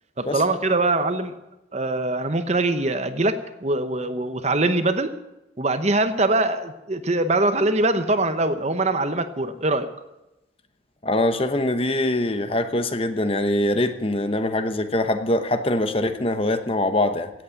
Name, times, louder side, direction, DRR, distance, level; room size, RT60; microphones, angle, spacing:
voice 1, 0.2-1.3 1.7-5.1 5.6-9.9, right 2 dB, 35° right, 10 dB, 0.9 m, -23 dB
voice 2, 11.0-17.3, left 1 dB, 30° left, 9 dB, 0.9 m, -23 dB
16.5 x 8.4 x 9.0 m, 0.95 s
head